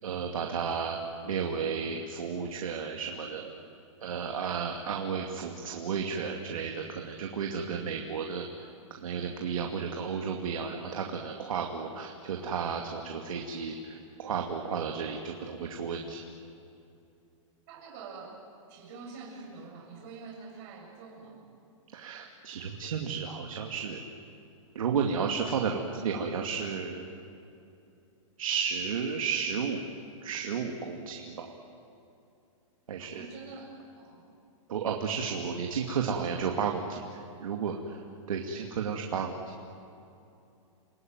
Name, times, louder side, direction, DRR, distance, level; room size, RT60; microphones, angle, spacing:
voice 1, 0.0-3.5 4.0-16.2 21.9-24.0 24.7-27.1 28.4-29.8 30.2-31.5 32.9-33.3 34.7-39.4, right 6 dB, 85° right, 2 dB, 2.5 m, -33 dB
voice 2, 17.7-18.4 18.7-21.5 33.0-34.2, right 4 dB, 35° right, 0 dB, 7.1 m, -46 dB
29.5 x 19.0 x 9.3 m, 2.7 s
hypercardioid pair, 160°, 17 cm